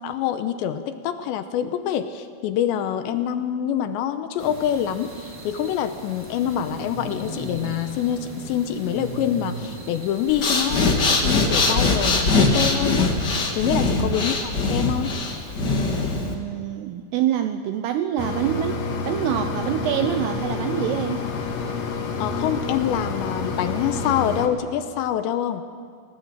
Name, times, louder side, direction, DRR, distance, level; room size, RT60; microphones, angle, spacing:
voice 1, 0.0-13.2 13.6-15.1 22.2-25.6, left 10 dB, 75° left, 9 dB, 2.9 m, -26 dB
sound 1, 4.4-10.9, right 1 dB, 25° right, 2.7 m, -37 dB
Breathing, 10.3-16.3, left 3 dB, 40° left, 1.6 m, -21 dB
voice 2, 13.6-14.2 15.6-21.3, right 11 dB, 80° right, 8 dB, 2.4 m, -26 dB
Mechanisms, 18.2-24.5, left 4 dB, 60° left, 1.8 m, -28 dB
27.5 x 18.0 x 7.4 m, 2.1 s
omnidirectional pair, 5.6 m